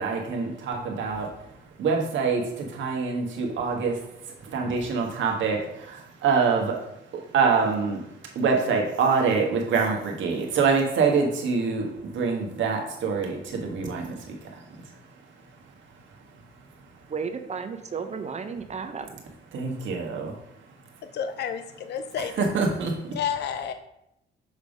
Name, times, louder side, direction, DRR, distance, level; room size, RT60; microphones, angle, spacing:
voice 1, 0.0-1.3 1.8-6.8 7.1-8.0 8.3-14.8 19.5-20.4 22.4-23.2, right 5 dB, 75° right, 2 dB, 1.4 m, -25 dB
voice 2, 17.1-19.2, right 5 dB, 35° right, 8 dB, 0.7 m, -33 dB
voice 3, 21.1-22.3 23.1-23.7, left 8 dB, 60° left, 9 dB, 0.5 m, -30 dB
6.5 x 3.5 x 5.2 m, 0.81 s
cardioid pair, 90°, 20 cm